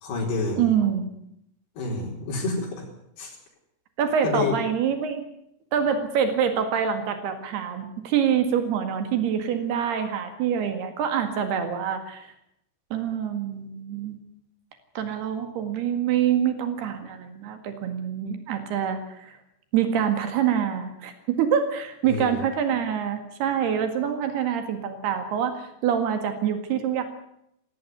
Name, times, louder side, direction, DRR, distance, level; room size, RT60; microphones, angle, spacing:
voice 1, 0.0-0.7 1.8-2.8 3.2-3.4 4.2-4.6 22.0-22.4, left 3 dB, 85° left, -1 dB, 6.4 m, -28 dB
voice 2, 0.6-1.1 4.0-5.2 5.7-12.3 12.9-14.2 15.0-19.4 19.7-27.0, right 8 dB, 80° right, 7 dB, 3.9 m, -25 dB
17.0 x 17.0 x 9.6 m, 0.77 s
omnidirectional pair, 4.5 m